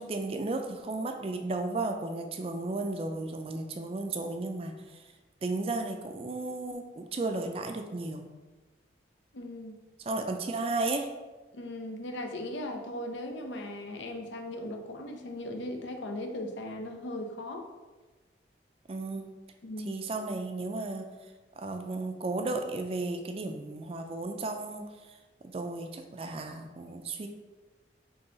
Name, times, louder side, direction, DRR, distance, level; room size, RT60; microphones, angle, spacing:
voice 1, 0.0-5.0 5.4-8.3 10.0-11.1 18.9-19.3 19.8-21.1 21.6-25.2 25.4-27.3, right 2 dB, 30° right, 5 dB, 0.3 m, -34 dB
voice 2, 9.3-9.8 11.5-17.7 19.6-20.0, left 1 dB, 90° left, 4 dB, 0.6 m, -38 dB
3.8 x 2.8 x 3.8 m, 1.2 s
head